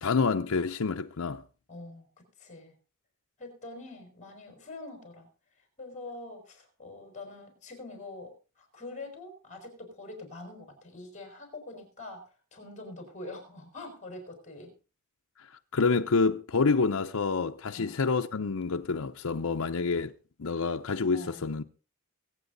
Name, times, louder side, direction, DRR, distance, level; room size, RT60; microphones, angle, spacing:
voice 1, 0.0-1.4 15.7-20.1 20.4-21.6, left 4 dB, 80° left, 0.7 m, -27 dB
voice 2, 1.7-2.8 3.4-5.3 5.8-14.7 17.8-17.9 21.1-21.5, left 2 dB, 35° left, 5.5 m, -44 dB
23.0 x 8.9 x 4.0 m
head